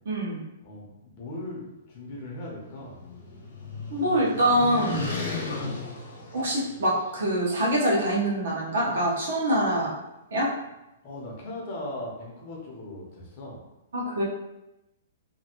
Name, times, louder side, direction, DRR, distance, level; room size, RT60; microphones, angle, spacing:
voice 1, 0.0-0.4 3.9-5.1 6.3-10.0 10.3-10.5 13.9-14.2, right 1 dB, 70° right, -4 dB, 1.1 m, -25 dB
voice 2, 0.6-3.0 11.0-13.6, left 1 dB, 30° left, -3 dB, 0.8 m, -38 dB
sound 1, 2.3-7.1, left 4 dB, 55° left, 1.0 m, -35 dB
2.8 x 2.7 x 2.9 m, 0.93 s
hypercardioid pair, 180°, 0 cm